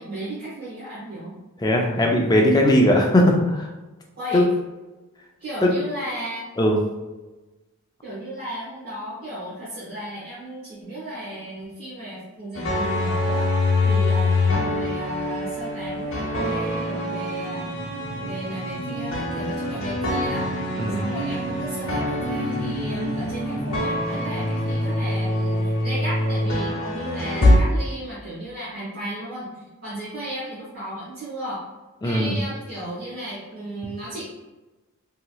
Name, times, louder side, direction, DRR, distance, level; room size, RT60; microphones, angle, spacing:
voice 1, 0.0-1.4 1.9-2.3 4.2-4.5 5.4-6.5 8.0-13.5 13.8-17.7 18.2-20.5 20.9-31.6 32.0-34.2, right 1 dB, 45° right, -9 dB, 0.9 m, -34 dB
voice 2, 1.6-3.7 4.3-4.4 5.6-5.7 6.6-6.8 20.8-21.0 32.0-32.3, left 1 dB, 15° left, 0 dB, 0.3 m, -18 dB
sound 1, 12.5-27.6, left 2 dB, 65° left, 0.8 m, -25 dB
sound 2, 17.4-24.7, right 1 dB, 85° left, 0.5 m, -33 dB
2.9 x 2.8 x 2.2 m, 1.1 s
head